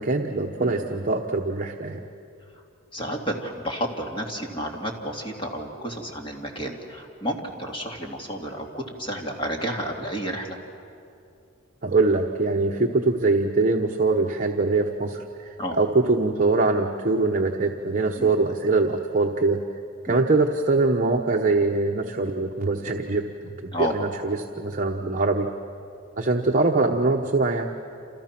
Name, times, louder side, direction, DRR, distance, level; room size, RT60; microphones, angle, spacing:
voice 1, 0.0-2.0 11.8-15.5 15.8-19.6 20.0-25.5 26.2-27.7, right 3 dB, 40° right, 2 dB, 1.0 m, -23 dB
voice 2, 2.9-10.6 15.6-15.8 18.2-18.3 20.1-20.2 23.7-24.0, equal, 25° left, 1 dB, 2.6 m, -31 dB
29.0 x 28.5 x 6.0 m, 2.5 s
head